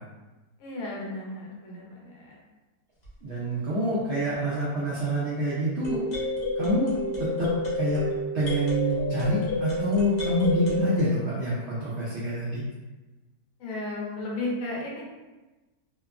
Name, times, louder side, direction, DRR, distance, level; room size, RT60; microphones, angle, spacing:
voice 1, 0.6-2.4 13.6-15.0, left 2 dB, 65° left, -3 dB, 0.9 m, -34 dB
sound 1, 3.1-3.2 5.8-11.0, left 1 dB, 90° left, 0.3 m, -30 dB
voice 2, 3.2-6.0 6.5-6.9 7.2-8.1 8.3-12.6, equal, 65° right, -8 dB, 0.7 m, -27 dB
2.8 x 2.1 x 2.3 m, 1.2 s
omnidirectional pair, 1.7 m